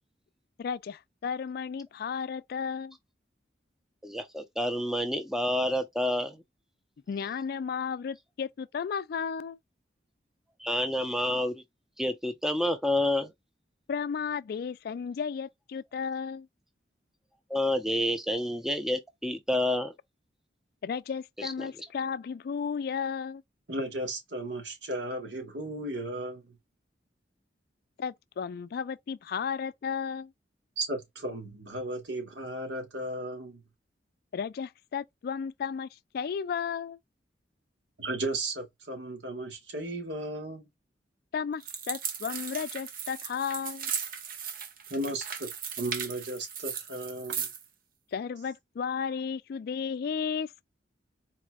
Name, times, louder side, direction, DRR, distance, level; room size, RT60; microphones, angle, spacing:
voice 1, 0.6-3.0 7.1-9.6 13.9-16.5 20.8-23.4 28.0-30.3 34.3-35.9 36.1-37.0 41.3-43.9 48.1-50.6, left 6 dB, 60° left, 0.3 m, -34 dB
voice 2, 4.0-6.4 10.6-11.6 12.0-13.3 17.5-19.9 21.4-21.9, left 1 dB, 5° right, 0.6 m, -29 dB
voice 3, 23.7-26.6 30.8-33.6 38.0-40.6 44.9-45.5 45.8-47.5, right 1 dB, 80° right, 1.6 m, -35 dB
sound 1, 41.6-47.7, right 7 dB, 50° right, 0.8 m, -37 dB
4.2 x 3.1 x 2.2 m
head